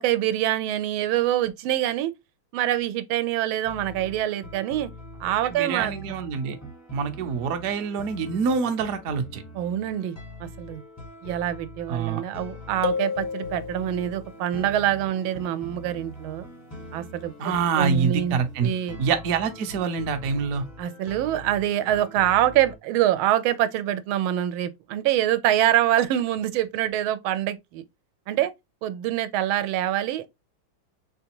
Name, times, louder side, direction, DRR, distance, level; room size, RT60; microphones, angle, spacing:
voice 1, 0.0-2.1 2.5-4.9 5.2-6.2 9.5-10.8 11.2-16.5 16.9-19.0 20.8-27.8 28.3-28.5 28.8-30.3, right 12 dB, 90° right, 1.4 m, -25 dB
sound 1, 3.6-22.8, equal, 15° left, 0.5 m, -43 dB
voice 2, 5.5-6.6 6.9-9.4 11.9-12.2 17.4-18.7 19.0-20.6, right 6 dB, 60° right, 0.9 m, -26 dB
sound 2, 12.8-14.3, left 6 dB, 80° left, 0.8 m, -30 dB
4.0 x 3.4 x 2.9 m
omnidirectional pair, 2.2 m